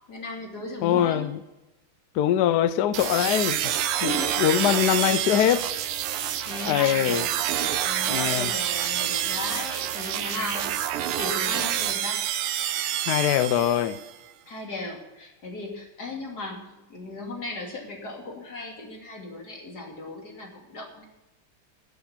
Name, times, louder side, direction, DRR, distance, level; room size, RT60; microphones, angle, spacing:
voice 1, 0.1-1.3 4.0-4.6 5.0-5.2 6.1-10.7 11.2-12.2 14.5-21.0, left 2 dB, 45° left, 3.3 m, -37 dB
voice 2, 0.8-1.4 2.1-3.7 4.0-5.7 6.7-7.2 8.1-8.5 13.1-14.0, left 10 dB, 80° left, 0.9 m, -23 dB
sound 1, 2.9-14.1, right 11 dB, 80° right, 1.7 m, -28 dB
15.5 x 8.6 x 5.7 m
omnidirectional pair, 2.4 m